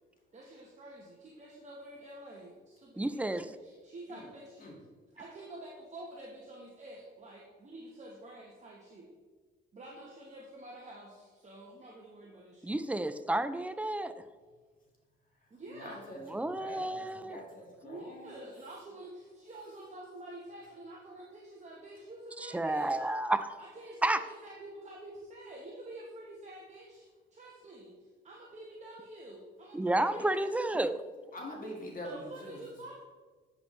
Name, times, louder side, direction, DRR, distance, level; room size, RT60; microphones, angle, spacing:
voice 1, 0.3-4.7 5.1-9.1 9.7-12.8 15.5-16.1 17.8-23.1 23.6-30.6 32.0-33.0, right 1 dB, 35° right, -3 dB, 1.1 m, -48 dB
voice 2, 3.0-3.5 12.6-14.2 16.3-17.4 22.4-23.5 24.0-24.2 29.7-31.0, right 1 dB, 5° right, 12 dB, 0.3 m, -31 dB
voice 3, 15.4-18.5 31.3-32.7, left 1 dB, 45° left, -2 dB, 1.8 m, -45 dB
8.2 x 5.2 x 3.2 m, 1.4 s
cardioid pair, 90°, 20 cm